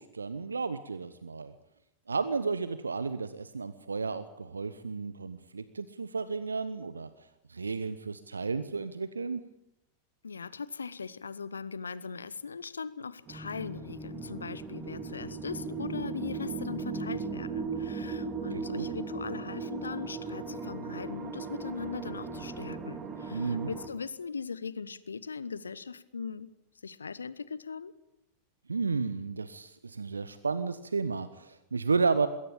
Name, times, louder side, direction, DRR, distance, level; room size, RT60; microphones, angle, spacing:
voice 1, 0.0-1.5 2.1-7.1 7.5-9.4 18.5-18.9 23.3-23.7 28.7-32.3, right 4 dB, 75° right, 14 dB, 0.9 m, -32 dB
voice 2, 10.2-26.5 26.8-27.9, left 5 dB, 75° left, 18 dB, 1.0 m, -40 dB
sound 1, 13.3-23.9, right 4 dB, 25° right, 2.8 m, -37 dB
21.0 x 17.0 x 8.7 m, 0.88 s
figure-of-eight pair, 90°, 0 cm